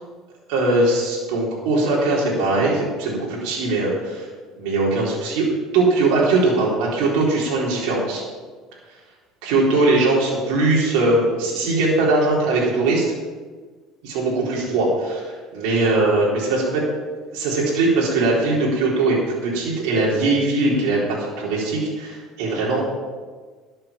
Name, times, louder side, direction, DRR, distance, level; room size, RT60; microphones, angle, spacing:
voice 1, 0.5-4.3 4.6-5.5 5.7-8.2 9.4-13.1 14.0-15.2 15.5-16.8 17.3-19.2 19.4-22.9, right 2 dB, 85° right, -5 dB, 4.1 m, -20 dB
12.5 x 7.7 x 7.4 m, 1.4 s
supercardioid pair, 110°, 0 cm